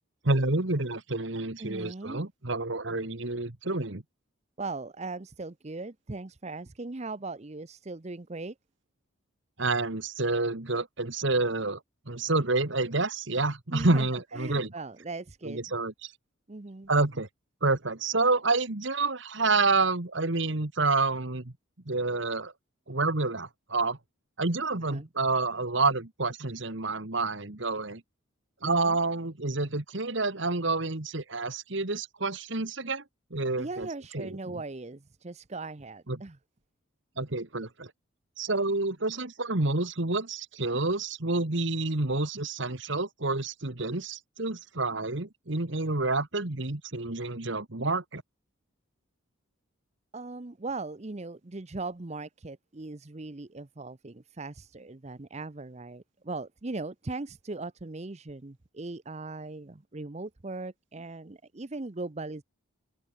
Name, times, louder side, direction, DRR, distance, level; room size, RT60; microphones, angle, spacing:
voice 1, 0.2-4.0 9.6-11.8 12.1-14.7 15.5-16.1 16.9-17.3 17.6-21.5 21.9-22.5 22.9-24.0 24.4-28.0 28.6-33.0 33.3-33.9 34.1-34.6 36.1-36.2 37.2-37.9 38.4-48.2, right 3 dB, 60° right, 1.8 m, -28 dB
voice 2, 1.6-2.3 4.6-8.5 13.7-15.6 16.5-16.9 24.8-25.1 28.6-29.0 33.6-36.4 50.1-62.4, right 3 dB, 35° right, 0.7 m, -39 dB
open air
head